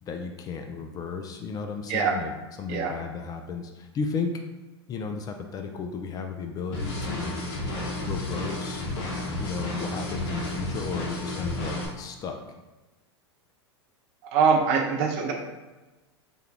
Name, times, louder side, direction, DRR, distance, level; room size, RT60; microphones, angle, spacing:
voice 1, 0.0-2.3 2.6-4.3 4.9-7.4 8.1-12.4, left 5 dB, 25° left, 4 dB, 0.3 m, -34 dB
sound 1, 6.7-11.9, left 1 dB, 55° left, 1.1 m, -32 dB
voice 2, 14.3-15.3, right 5 dB, 50° right, 2 dB, 0.7 m, -23 dB
3.5 x 2.2 x 3.4 m, 1.2 s
hypercardioid pair, 95°, 14 cm